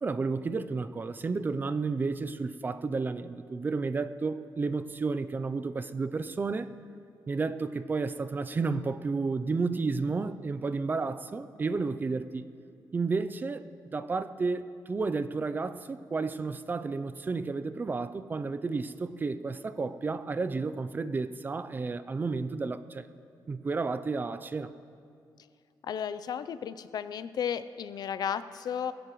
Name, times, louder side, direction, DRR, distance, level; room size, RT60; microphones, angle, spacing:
voice 1, 0.0-6.7 7.3-12.5 12.9-13.7 13.9-23.1 23.5-24.7, right 4 dB, 25° right, 12 dB, 0.4 m, -32 dB
voice 2, 25.8-28.9, left 8 dB, 60° left, 14 dB, 0.5 m, -34 dB
20.5 x 16.5 x 3.1 m, 2.3 s
wide cardioid pair, 175°, 8 cm